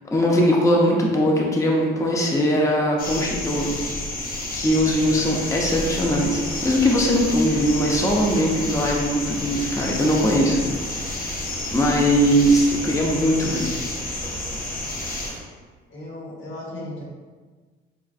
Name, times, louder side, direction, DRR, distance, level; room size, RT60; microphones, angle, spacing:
voice 1, 0.1-3.8 4.5-10.6 11.7-13.7, equal, 15° left, -2 dB, 0.6 m, -20 dB
sound 1, 3.0-15.3, left 2 dB, 45° left, 0.7 m, -30 dB
sound 2, 5.3-15.4, right 2 dB, 45° right, 0.7 m, -39 dB
voice 2, 15.9-17.1, left 1 dB, 75° left, -4 dB, 1.1 m, -36 dB
4.7 x 2.4 x 2.4 m, 1.4 s
cardioid pair, 90°, 20 cm